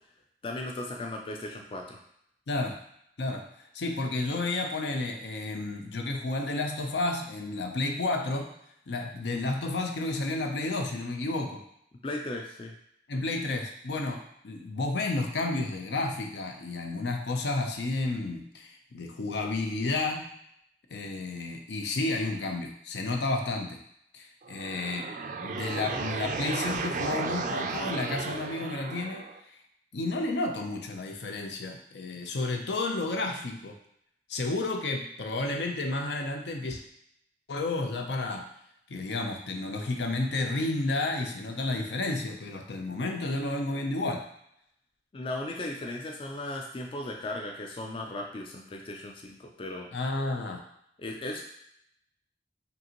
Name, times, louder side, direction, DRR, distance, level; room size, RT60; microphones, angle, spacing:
voice 1, 0.4-2.0 12.0-12.7 45.1-49.9 51.0-51.4, left 1 dB, 30° left, 1 dB, 0.3 m, -36 dB
voice 2, 3.2-8.5 8.9-11.6 13.1-20.3 20.9-23.8 24.1-25.1 25.4-29.3 29.9-33.8 34.3-36.8 37.5-38.5 38.9-44.3 49.9-50.6, left 2 dB, 75° left, 3 dB, 0.6 m, -31 dB
sound 1, 24.4-29.4, right 4 dB, 45° right, 0.3 m, -34 dB
5.2 x 2.6 x 2.9 m, 0.73 s
head